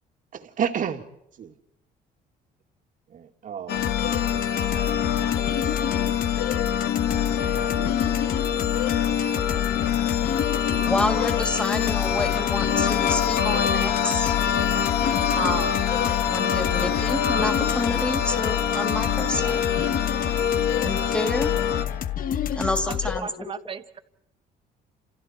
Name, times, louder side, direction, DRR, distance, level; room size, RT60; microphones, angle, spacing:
voice 1, 0.3-1.0 1.4-1.5 3.1-3.9 7.4-8.2, right 8 dB, 50° right, 6 dB, 2.2 m, -31 dB
sound 1, 3.7-21.8, left 8 dB, 75° left, 2.1 m, -25 dB
sound 2, 3.8-23.2, left 10 dB, 55° left, 1.2 m, -29 dB
voice 2, 10.8-14.3 15.4-15.8 16.3-19.6 20.8-21.5 22.6-23.3, left 1 dB, 5° left, 5 dB, 2.8 m, -29 dB
voice 3, 22.9-24.0, right 6 dB, 30° right, 10 dB, 1.3 m, -36 dB
29.5 x 28.5 x 4.5 m, 0.79 s
cardioid pair, 110°, 17 cm